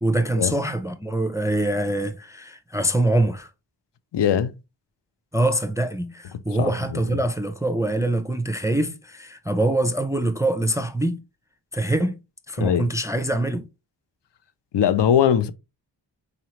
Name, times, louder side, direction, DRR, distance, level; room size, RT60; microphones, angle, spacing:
voice 1, 0.0-3.5 5.3-11.2 11.7-12.2 12.5-13.6, right 1 dB, 10° right, 0.3 m, -24 dB
voice 2, 4.1-4.5 6.6-7.0 12.6-12.9 14.7-15.5, left 9 dB, 70° left, 0.5 m, -20 dB
4.0 x 2.9 x 3.0 m
wide cardioid pair, 85°, 44 cm